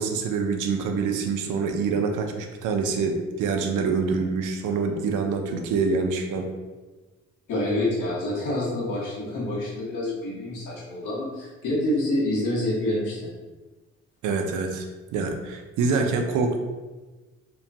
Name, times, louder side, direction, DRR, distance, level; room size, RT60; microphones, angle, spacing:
voice 1, 0.0-6.5 14.2-14.9 15.1-16.6, right 4 dB, 85° right, 4 dB, 0.5 m, -25 dB
voice 2, 7.5-13.3, left 1 dB, 80° left, -5 dB, 1.1 m, -27 dB
2.9 x 2.2 x 2.5 m, 1.2 s
cardioid pair, 90°, 30 cm